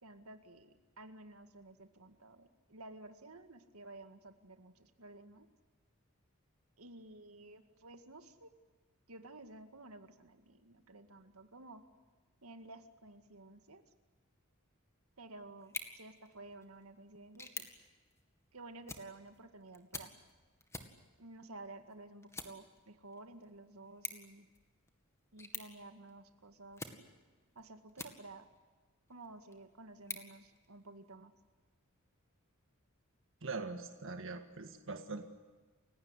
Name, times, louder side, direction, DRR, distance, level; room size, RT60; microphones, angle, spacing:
voice 1, 0.0-5.5 6.8-8.5 9.1-11.8 12.4-13.8 15.2-17.7 18.5-20.1 21.2-24.5 25.3-26.9 27.6-28.5 29.1-31.3, right 2 dB, 85° right, 8 dB, 2.0 m, -53 dB
sound 1, 15.6-28.6 29.1-31.1, left 3 dB, 15° left, 2.2 m, -50 dB
voice 2, 33.4-35.2, right 3 dB, 65° right, 6 dB, 1.7 m, -42 dB
29.5 x 17.0 x 9.9 m, 1.3 s
head